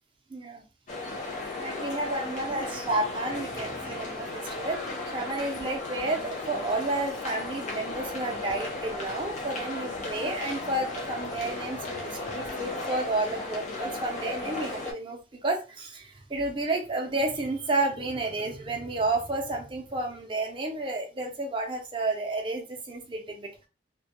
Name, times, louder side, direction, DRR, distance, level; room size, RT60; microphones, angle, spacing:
voice 1, 0.3-0.6 1.6-4.8 5.1-23.7, right 2 dB, 25° right, 1 dB, 0.4 m, -31 dB
sound 1, 0.9-14.9, left 2 dB, 40° left, 0.5 m, -35 dB
2.2 x 2.0 x 2.8 m, 0.31 s
head